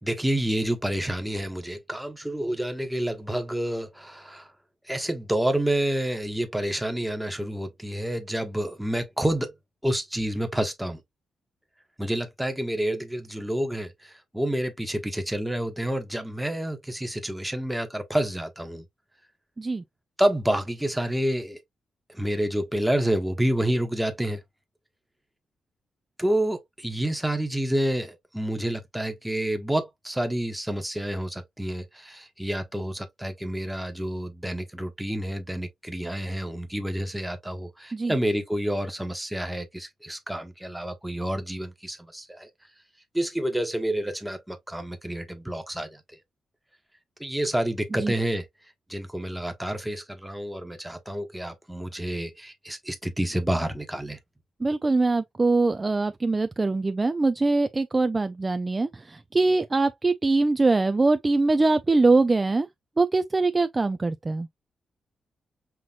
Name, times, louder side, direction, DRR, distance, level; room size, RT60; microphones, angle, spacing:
voice 1, 0.0-4.5 4.9-9.5 9.8-11.0 12.0-18.8 20.2-21.6 22.1-24.4 26.2-42.5 43.1-46.0 47.2-48.4 48.9-54.2, right 1 dB, 5° right, 1.1 m, -28 dB
voice 2, 54.6-62.7 63.0-64.5, right 3 dB, 25° right, 0.4 m, -23 dB
5.8 x 3.0 x 2.3 m
cardioid pair, 110°, 0 cm